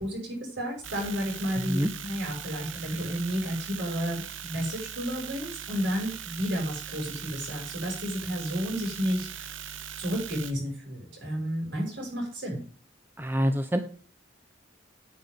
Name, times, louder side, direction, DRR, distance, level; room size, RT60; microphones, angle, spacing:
voice 1, 0.0-9.5 10.0-12.6, equal, 65° right, 0 dB, 6.0 m, -32 dB
sound 1, 0.8-10.5, right 9 dB, 80° right, 1.0 m, -40 dB
voice 2, 1.6-1.9 13.2-13.8, equal, 10° right, 7 dB, 0.7 m, -26 dB
9.5 x 8.8 x 3.5 m, 0.41 s
head